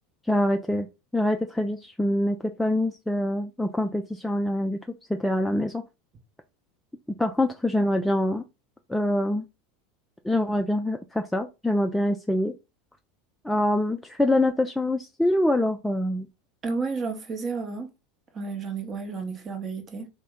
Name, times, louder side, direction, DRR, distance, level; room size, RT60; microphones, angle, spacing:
voice 1, 0.3-0.9 1.1-4.8 5.1-5.8 7.2-8.4 8.9-9.4 10.2-12.5 13.4-16.3, left 1 dB, 5° left, 0.3 m, -25 dB
voice 2, 16.6-17.9 18.3-20.1, right 4 dB, 35° right, 0.8 m, -31 dB
2.7 x 2.1 x 3.4 m
hypercardioid pair, 90°, 0 cm